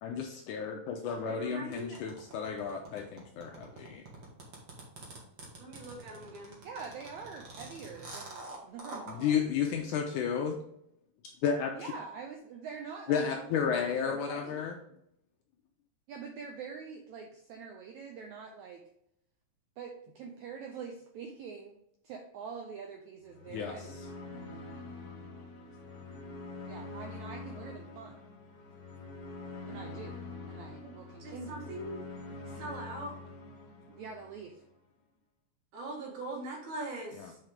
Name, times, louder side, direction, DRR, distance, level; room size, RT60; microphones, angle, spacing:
voice 1, 0.0-4.0 9.1-10.6 11.4-11.9 13.1-14.8 23.5-23.8 37.2-37.3, left 7 dB, 80° left, 3 dB, 1.9 m, -32 dB
voice 2, 1.3-2.0 5.6-6.6 30.8-30.9 31.2-32.0 32.5-33.2 35.7-37.4, right 2 dB, 60° right, 0 dB, 2.7 m, -41 dB
sound 1, 1.7-9.1, right 2 dB, 45° right, 1.3 m, -46 dB
voice 3, 6.6-9.4 11.8-15.0 16.1-18.8 19.8-24.0 26.7-28.2 29.6-31.9 33.9-34.6, right 5 dB, 85° right, 2 dB, 1.6 m, -45 dB
sound 2, 23.2-34.6, left 3 dB, 60° left, 1.1 m, -45 dB
7.8 x 4.8 x 3.5 m, 0.73 s
omnidirectional pair, 4.2 m